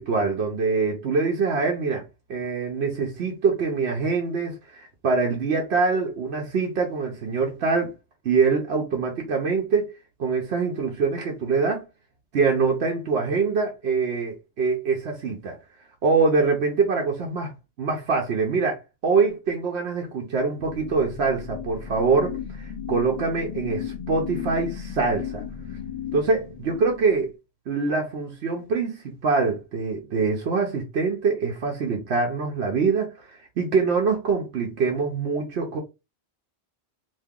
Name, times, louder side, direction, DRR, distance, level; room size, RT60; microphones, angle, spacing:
voice 1, 0.0-7.9 8.2-9.9 10.2-11.9 12.3-15.6 16.0-17.5 17.8-25.4 26.1-27.3 27.7-35.8, right 4 dB, 80° right, 1.0 m, -24 dB
sound 1, 20.6-27.3, left 8 dB, 55° left, 0.6 m, -35 dB
2.8 x 2.7 x 3.6 m
omnidirectional pair, 1.1 m